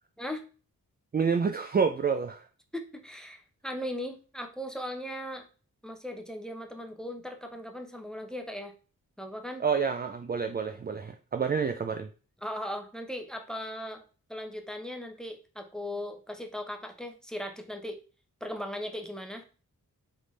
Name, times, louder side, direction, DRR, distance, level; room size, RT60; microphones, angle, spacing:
voice 1, 1.1-2.5 9.6-12.1, right 6 dB, 30° right, 0.4 m, -28 dB
voice 2, 2.7-5.5 5.8-8.7 9.2-9.6 12.4-14.0 14.3-18.0 18.4-19.4, left 1 dB, ahead, 0.8 m, -38 dB
3.8 x 3.5 x 3.2 m
cardioid pair, 70°, 35 cm